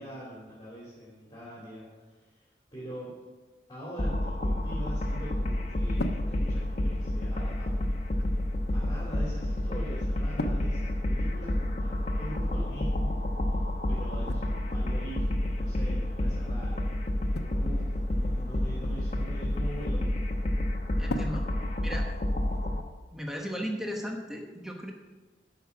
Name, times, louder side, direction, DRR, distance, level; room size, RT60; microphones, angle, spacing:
voice 1, 0.0-3.2 3.7-7.7 8.7-16.9 17.2-20.5, equal, 25° left, -7 dB, 2.7 m, -43 dB
sound 1, 4.0-22.8, left 1 dB, 40° left, 1.0 m, -29 dB
sound 2, 4.6-22.6, left 1 dB, 70° left, 0.9 m, -44 dB
voice 2, 21.0-21.5 21.8-22.1 22.6-22.8 23.1-24.9, equal, ahead, 0 dB, 0.9 m, -36 dB
12.0 x 5.8 x 7.2 m, 1.3 s
head